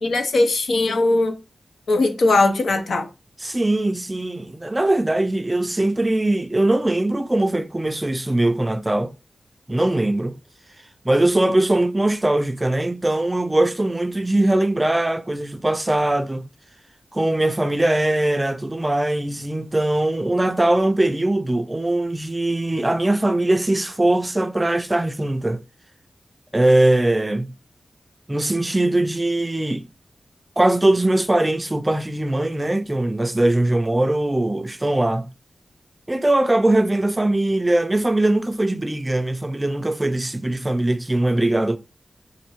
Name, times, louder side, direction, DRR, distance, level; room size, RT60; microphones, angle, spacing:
voice 1, 0.0-1.4 1.9-3.1, left 2 dB, 85° left, 0.7 m, -19 dB
voice 2, 3.4-9.1 9.7-10.4 11.0-16.5 17.1-25.6 26.5-27.5 28.3-29.9 30.6-35.3 36.1-41.8, right 1 dB, 20° right, 0.3 m, -21 dB
5.1 x 2.5 x 3.0 m
wide cardioid pair, 80°, 0 cm